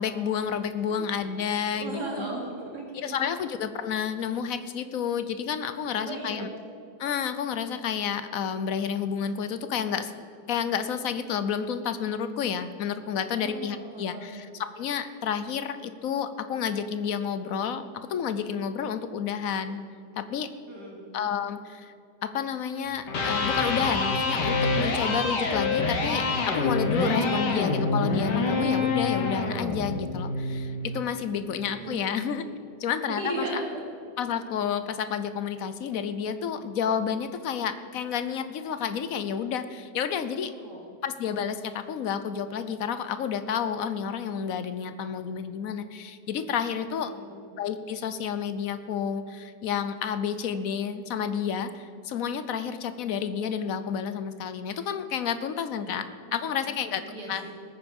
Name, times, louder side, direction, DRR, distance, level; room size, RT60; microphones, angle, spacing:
voice 1, 0.0-2.2 2.9-6.5 7.0-14.5 14.8-19.8 20.2-20.5 21.1-21.9 22.2-32.4 32.8-33.6 34.2-40.5 41.0-47.1 47.6-57.4, left 7 dB, 60° left, 11 dB, 1.0 m, -30 dB
voice 2, 1.7-3.4 6.0-6.5 13.3-14.4 20.7-21.0 31.3-32.3 33.1-33.8 40.5-40.8 46.9-47.4 55.9-57.5, right 2 dB, 70° right, -1 dB, 3.2 m, -37 dB
Electric guitar, 23.0-31.1, left 3 dB, 80° left, 2.2 m, -26 dB
20.0 x 9.2 x 5.3 m, 2.4 s
omnidirectional pair, 1.8 m